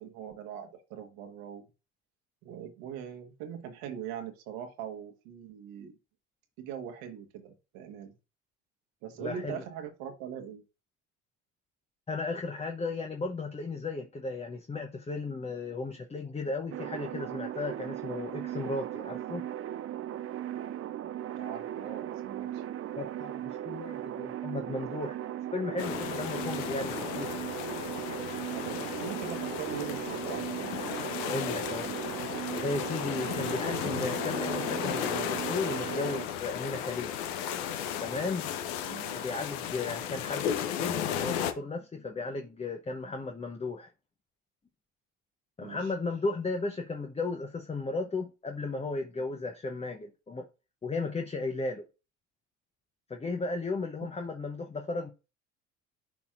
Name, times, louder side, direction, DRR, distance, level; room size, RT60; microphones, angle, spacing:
voice 1, 0.0-1.6 2.4-5.9 6.6-8.1 9.0-10.6 21.3-22.6 28.5-30.8 38.9-39.2 45.6-45.9 54.0-54.1, right 8 dB, 65° right, 1.4 m, -41 dB
voice 2, 9.2-9.6 12.1-19.4 23.0-25.1 25.5-27.3 31.3-32.0 32.6-37.2 38.0-38.5 39.1-43.9 45.6-50.5 50.8-51.8 53.1-55.1, left 3 dB, 15° left, 0.8 m, -35 dB
sound 1, 16.7-36.3, right 11 dB, 35° right, 0.6 m, -37 dB
sound 2, 25.8-41.5, left 9 dB, 65° left, 0.9 m, -34 dB
10.5 x 4.2 x 2.4 m
hypercardioid pair, 60°, 38 cm